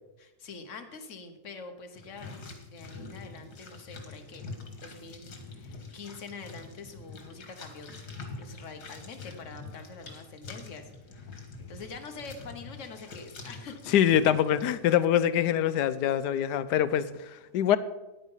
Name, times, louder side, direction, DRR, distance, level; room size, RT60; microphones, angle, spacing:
voice 1, 0.2-4.4 4.8-7.9 8.4-11.3 11.6-14.1, left 4 dB, 50° left, 6 dB, 1.4 m, -45 dB
sound 1, 1.9-14.9, left 3 dB, 70° left, 2.1 m, -45 dB
voice 2, 13.9-17.8, left 10 dB, 85° left, 14 dB, 1.2 m, -24 dB
9.9 x 9.3 x 5.6 m, 1.0 s
omnidirectional pair, 1.7 m